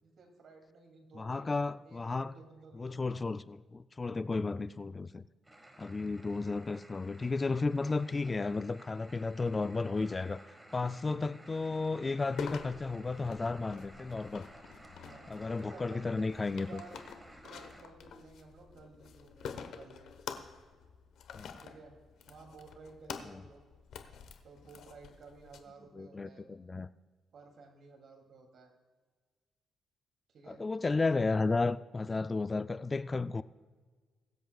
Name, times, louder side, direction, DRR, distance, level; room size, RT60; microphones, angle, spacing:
voice 1, 0.0-1.6 1.8-3.3 15.0-16.1 16.5-17.0 17.3-20.1 21.6-22.0 22.3-23.6 24.4-26.5 27.3-28.7 30.3-30.6, right 4 dB, 60° right, 2.6 m, -54 dB
voice 2, 1.1-2.3 2.8-5.2 5.8-10.4 10.7-14.5 15.3-16.8 21.3-21.5 25.9-26.9 30.5-33.4, left 3 dB, 25° left, 0.3 m, -33 dB
sound 1, 5.4-17.8, right 1 dB, 10° right, 1.6 m, -55 dB
sound 2, 12.4-25.6, left 6 dB, 75° left, 1.0 m, -48 dB
22.5 x 7.9 x 2.3 m
cardioid pair, 90°, 0 cm